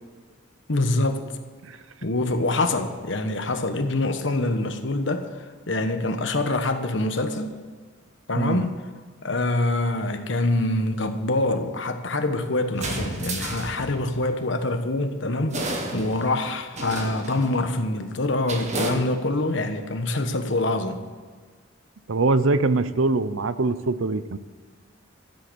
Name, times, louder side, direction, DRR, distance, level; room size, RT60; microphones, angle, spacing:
voice 1, 0.7-1.2 2.0-7.5 8.3-8.8 9.2-21.0, left 2 dB, 65° left, 7 dB, 1.2 m, -25 dB
sound 1, 12.7-14.3 15.5-16.4 16.7-17.6 18.5-18.9, right 2 dB, 35° right, 1.7 m, -31 dB
voice 2, 22.1-24.4, right 3 dB, 80° right, 14 dB, 0.7 m, -23 dB
14.0 x 8.1 x 6.9 m, 1.6 s
head